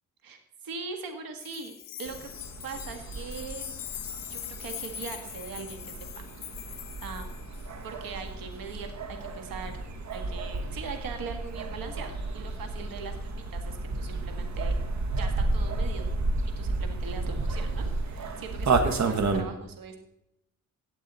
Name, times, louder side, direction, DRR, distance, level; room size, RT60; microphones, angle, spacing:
voice 1, 0.2-2.3 2.6-3.7 4.3-6.2 6.6-7.4 7.8-9.7 10.1-14.8 15.1-16.1 16.6-20.0, right 5 dB, 85° right, 6 dB, 1.8 m, -41 dB
sound 1, 1.4-7.8 10.1-10.2, left 10 dB, 70° left, 1.0 m, -41 dB
sound 2, 2.1-19.4, right 3 dB, 55° right, 1.5 m, -32 dB
16.0 x 8.4 x 4.2 m, 0.83 s
cardioid pair, 85°, 34 cm